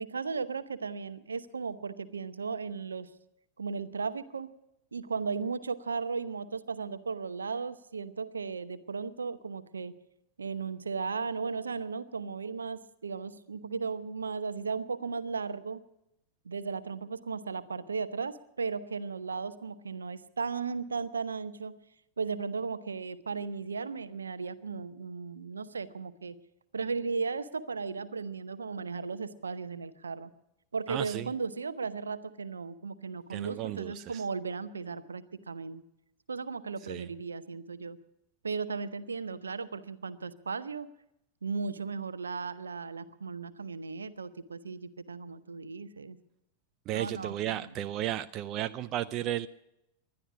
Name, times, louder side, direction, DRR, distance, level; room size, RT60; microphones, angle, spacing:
voice 1, 0.0-3.1 3.6-4.5 4.9-9.9 10.4-15.8 16.4-21.7 22.2-26.3 26.7-30.3 30.7-35.8 36.3-38.0 38.4-40.9 41.4-46.2 46.9-47.7, right 5 dB, 75° right, 14 dB, 0.8 m, -36 dB
voice 2, 30.9-31.3 33.3-34.2 36.8-37.1 46.9-49.5, right 13 dB, 35° right, 13 dB, 0.5 m, -34 dB
20.0 x 12.0 x 6.1 m, 0.85 s
figure-of-eight pair, 90°, 0 cm